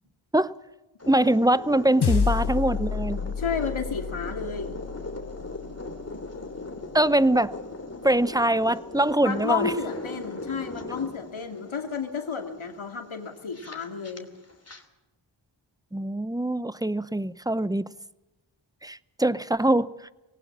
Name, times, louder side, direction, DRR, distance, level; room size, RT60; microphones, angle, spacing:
sound 1, 1.0-14.8, left 2 dB, 30° left, 2.9 m, -39 dB
voice 1, 1.1-3.3 6.9-7.5 8.0-9.7 15.9-17.9 18.8-19.9, right 1 dB, 10° right, 0.7 m, -23 dB
sound 2, 2.0-6.6, left 6 dB, 55° left, 1.0 m, -30 dB
voice 2, 3.4-4.8 9.2-14.3, left 6 dB, 80° left, 2.6 m, -32 dB
19.5 x 18.5 x 7.3 m
cardioid pair, 50°, 48 cm